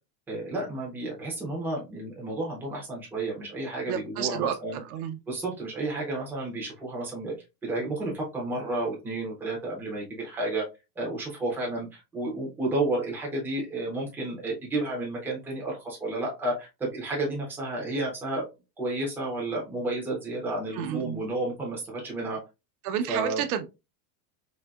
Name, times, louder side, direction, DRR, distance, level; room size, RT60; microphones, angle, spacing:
voice 1, 0.3-4.8 5.3-7.3 7.6-10.6 11.0-18.4 18.8-22.4 23.1-23.4, right 2 dB, 5° right, 0.4 m, -31 dB
voice 2, 3.9-5.2 20.7-21.2 22.8-23.7, right 9 dB, 65° right, 0.6 m, -31 dB
4.0 x 2.6 x 2.2 m
supercardioid pair, 170°, 48 cm